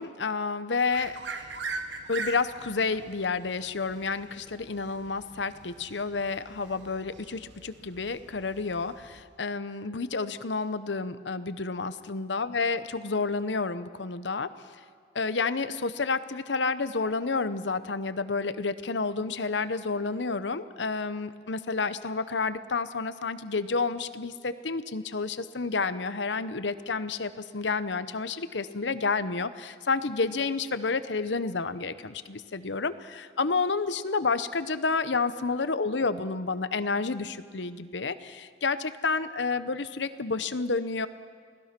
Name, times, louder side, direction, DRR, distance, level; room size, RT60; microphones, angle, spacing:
voice 1, 0.0-1.5 2.1-14.5 15.1-41.1, left 4 dB, 85° left, 13 dB, 0.9 m, -30 dB
sound 1, 0.9-9.2, right 4 dB, 85° right, 1.6 m, -42 dB
29.0 x 18.5 x 6.0 m, 2.1 s
head